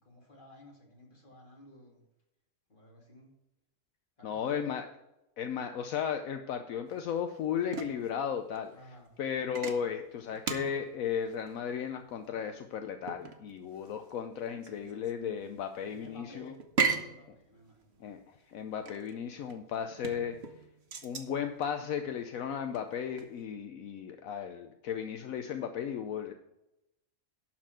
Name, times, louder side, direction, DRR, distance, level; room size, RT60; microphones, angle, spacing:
voice 1, 0.0-2.0 2.7-3.3 4.2-4.7 8.7-9.1 15.8-18.1, left 1 dB, 35° left, -1 dB, 2.6 m, -54 dB
voice 2, 4.2-4.9 5.4-8.7 9.2-16.5 18.0-20.4 21.0-26.3, left 8 dB, 75° left, 6 dB, 1.1 m, -35 dB
sound 1, 6.9-23.4, right 5 dB, 50° right, 1.3 m, -39 dB
12.0 x 4.3 x 7.6 m, 0.88 s
omnidirectional pair, 1.4 m